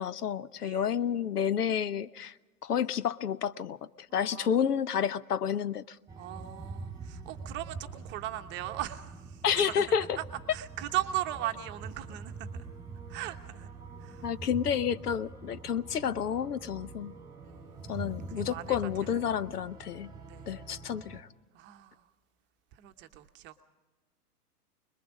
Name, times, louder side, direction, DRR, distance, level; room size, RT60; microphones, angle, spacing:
voice 1, 0.0-2.4 2.6-6.0 9.4-10.0 14.2-17.2 17.9-20.1 20.5-21.3, left 8 dB, 75° left, 0.9 m, -30 dB
voice 2, 0.5-1.0 4.2-4.7 6.2-9.8 10.2-10.3 10.5-12.7 13.1-13.7 14.0-14.3 17.4-18.1 18.3-18.8 19.1-19.4 20.3-20.6 21.5-22.1 22.7-23.6, right 14 dB, 25° right, 1.0 m, -39 dB
sound 1, 6.1-21.2, right 4 dB, 5° right, 2.1 m, -44 dB
25.5 x 21.0 x 5.2 m
hypercardioid pair, 125°, 47 cm